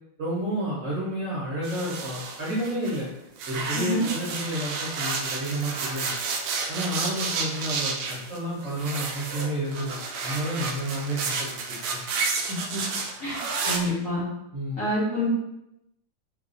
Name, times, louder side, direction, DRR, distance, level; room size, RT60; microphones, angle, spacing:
voice 1, 0.2-3.1 3.5-6.1 6.7-11.3 11.9-12.0 14.5-14.8, right 1 dB, 50° right, -9 dB, 1.0 m, -30 dB
sound 1, 1.6-3.0 3.4-13.8, right 4 dB, 75° right, 1.1 m, -31 dB
voice 2, 12.5-12.8 13.2-13.4 13.7-14.2 14.8-15.3, left 1 dB, 50° left, -8 dB, 1.1 m, -27 dB
3.2 x 2.6 x 3.9 m, 0.88 s
omnidirectional pair, 2.4 m